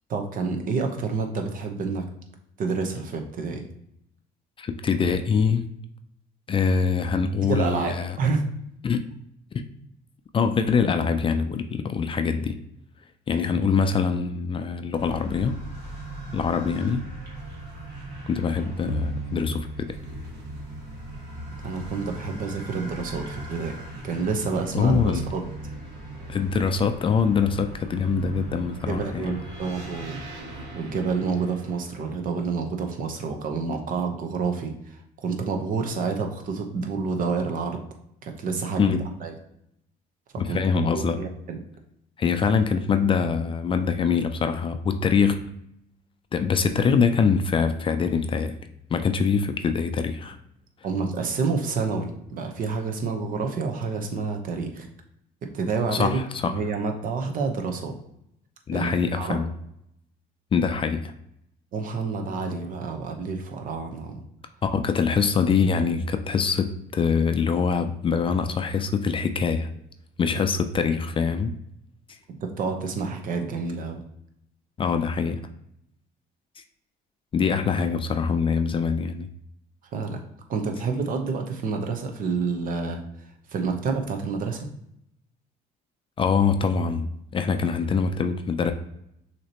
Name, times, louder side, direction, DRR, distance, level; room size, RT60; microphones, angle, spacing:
voice 1, 0.1-2.1 2.6-3.7 7.4-8.5 21.6-23.8 24.0-25.4 28.9-30.2 30.7-37.8 38.2-39.3 40.5-41.6 50.8-54.9 55.4-58.0 58.7-59.4 61.7-64.2 70.3-70.4 72.4-74.0 79.9-80.2 80.5-84.7, right 4 dB, 55° right, 4 dB, 0.8 m, -29 dB
voice 2, 4.6-5.6 6.5-8.2 8.8-9.1 9.5-9.6 10.3-12.6 13.3-15.6 16.3-17.0 18.3-20.0 24.7-25.2 26.3-29.4 38.8-39.0 40.4-41.2 42.2-45.5 46.3-48.5 48.9-50.4 55.9-56.5 58.7-59.5 60.5-61.1 64.6-69.7 70.2-71.5 74.8-75.4 77.3-79.3 86.2-87.1 87.3-88.7, left 5 dB, 30° left, 8 dB, 0.4 m, -24 dB
sound 1, 14.9-32.9, right 1 dB, 80° right, 1.3 m, -37 dB
6.2 x 2.9 x 2.9 m, 0.76 s
cardioid pair, 110°, 17 cm